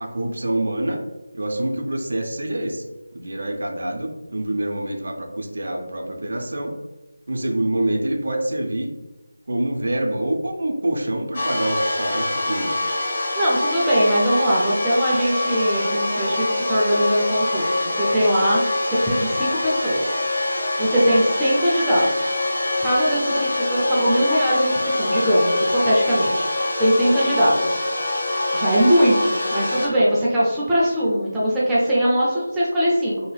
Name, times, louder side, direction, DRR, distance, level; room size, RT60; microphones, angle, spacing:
voice 1, 0.0-1.0 1.3-6.7 7.3-8.9 9.5-12.9, right 1 dB, 65° right, 3 dB, 0.5 m, -26 dB
sound 1, 11.3-29.9, left 2 dB, 45° left, 0.8 m, -24 dB
voice 2, 13.4-20.2 20.8-22.4 22.8-27.8 28.5-33.3, equal, 5° right, -9 dB, 0.4 m, -21 dB
2.7 x 2.2 x 3.2 m, 1.1 s
figure-of-eight pair, 170°, 0 cm